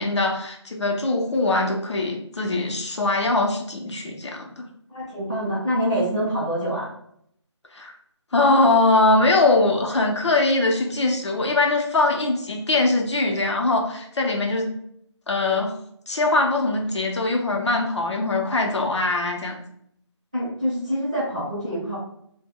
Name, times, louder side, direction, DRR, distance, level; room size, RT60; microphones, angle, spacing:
voice 1, 0.0-4.7 7.7-7.9 8.3-14.7 15.3-15.7 16.1-19.6, left 2 dB, 65° left, 1 dB, 0.6 m, -22 dB
voice 2, 4.9-6.9 20.3-21.9, equal, 15° right, -13 dB, 0.6 m, -25 dB
2.1 x 2.1 x 3.4 m, 0.70 s
figure-of-eight pair, 180°, 16 cm